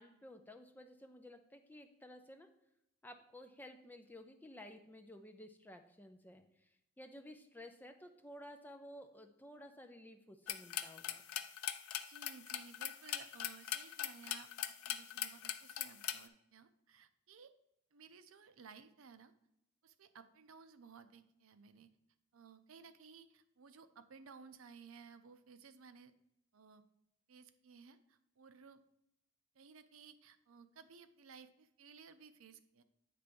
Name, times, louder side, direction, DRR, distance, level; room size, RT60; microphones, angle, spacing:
voice 1, 0.0-2.5 3.0-11.2, left 1 dB, 10° left, 5 dB, 0.4 m, -54 dB
sound 1, 10.5-16.2, left 11 dB, 90° left, 0.5 m, -41 dB
voice 2, 12.1-17.5 17.9-19.3 19.8-21.9 22.3-26.1 26.5-26.8 27.3-28.8 29.5-32.8, right 5 dB, 75° right, 11 dB, 0.5 m, -58 dB
8.4 x 3.3 x 5.2 m, 0.83 s
head